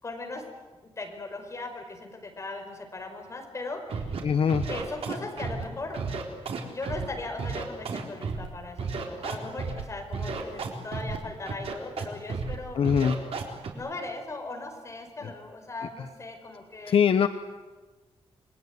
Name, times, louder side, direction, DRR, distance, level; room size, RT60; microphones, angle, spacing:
voice 1, 0.0-0.4 0.8-4.2 4.6-6.0 6.5-12.8 13.7-17.0, left 2 dB, 30° left, 3 dB, 5.0 m, -38 dB
Scratching (performance technique), 3.9-4.2 4.5-5.6 5.9-7.0 7.4-8.5 8.8-9.8 10.1-11.2 11.5-12.0 12.3-12.6 12.8-13.7, right 5 dB, 75° right, 4.0 m, -32 dB
voice 2, 4.2-4.7 12.8-13.2 16.9-17.3, left 7 dB, 65° left, 9 dB, 1.1 m, -22 dB
28.0 x 21.5 x 9.6 m, 1.3 s
wide cardioid pair, 175°, 10 cm